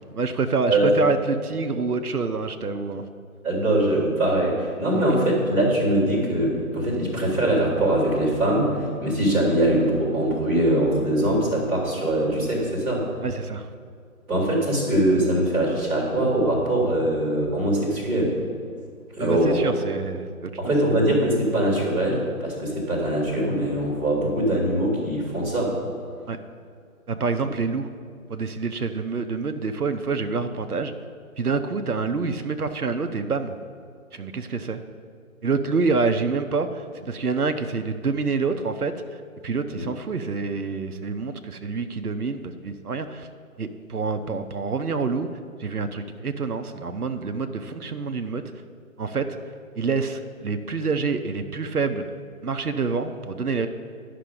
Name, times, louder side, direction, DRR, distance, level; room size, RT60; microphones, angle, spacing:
voice 1, 0.1-3.0 4.9-5.1 13.2-13.7 19.2-20.7 26.3-26.4 27.1-27.9 28.3-30.9 31.4-33.5 34.1-34.8 35.4-38.9 39.4-43.3 43.6-45.3 45.6-48.4 49.0-49.3 49.8-52.0 52.4-53.7, right 4 dB, 85° right, 8 dB, 0.8 m, -27 dB
voice 2, 3.4-13.1 14.3-18.3 19.2-19.6 20.6-25.7 39.7-39.9, right 1 dB, 5° right, -15 dB, 1.5 m, -22 dB
11.5 x 6.0 x 5.1 m, 2.2 s
figure-of-eight pair, 155°, 44 cm